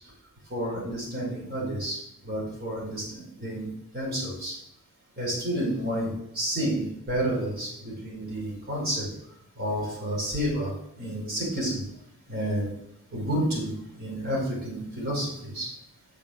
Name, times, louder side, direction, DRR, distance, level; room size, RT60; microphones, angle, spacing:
voice 1, 0.5-2.0 2.2-3.7 3.9-4.5 5.2-9.0 9.6-10.7 11.0-11.8 12.3-12.7 13.1-15.7, right 1 dB, 45° right, -4 dB, 4.7 m, -30 dB
7.3 x 6.7 x 7.6 m, 0.74 s
head